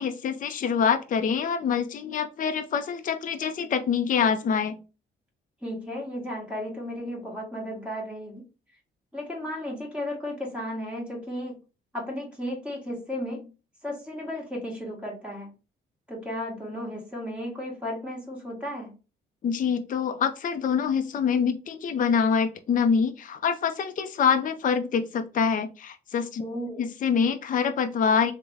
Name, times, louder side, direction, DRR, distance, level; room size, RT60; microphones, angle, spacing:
voice 1, 0.0-4.7 19.4-26.4 26.8-28.3, left 6 dB, 40° left, 8 dB, 0.5 m, -25 dB
voice 2, 5.6-8.4 9.1-11.5 11.9-13.5 13.8-15.5 16.1-18.9 26.4-26.8, left 1 dB, 5° right, -3 dB, 1.6 m, -34 dB
3.2 x 2.1 x 3.4 m, 0.32 s
cardioid pair, 90°, 20 cm